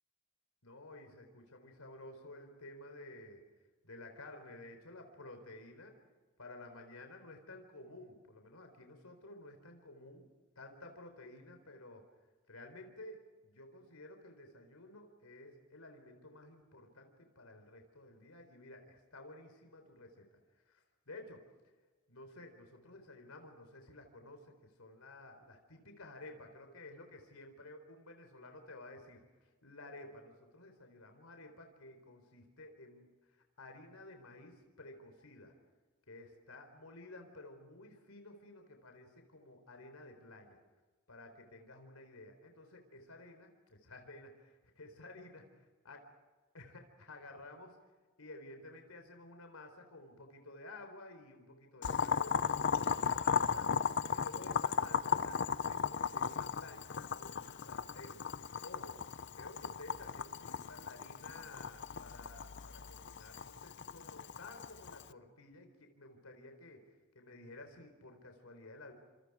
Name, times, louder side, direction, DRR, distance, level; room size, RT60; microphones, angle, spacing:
voice 1, 0.6-3.4 3.8-6.0 6.4-10.3 10.6-12.1 12.5-20.3 20.5-21.4 22.1-35.5 36.1-40.6 41.1-45.5 45.8-46.0 46.5-47.8 48.2-53.8 54.1-58.2 58.6-59.0 59.3-66.8 67.1-68.9, left 2 dB, 90° left, 5 dB, 4.1 m, -53 dB
Boiling, 51.8-65.1, left 6 dB, 55° left, 0.6 m, -36 dB
29.5 x 26.5 x 4.9 m, 1.3 s
head